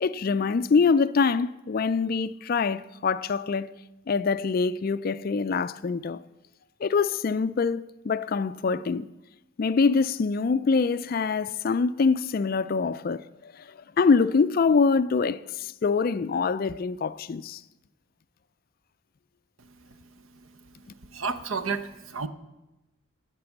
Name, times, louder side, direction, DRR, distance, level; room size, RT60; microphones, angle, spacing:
voice 1, 0.0-3.7 4.1-6.2 6.8-9.1 9.6-13.6 14.0-17.6, left 5 dB, 45° left, 0.3 m, -24 dB
voice 2, 21.1-22.3, right 4 dB, 70° right, 0.8 m, -31 dB
16.5 x 6.0 x 7.1 m
head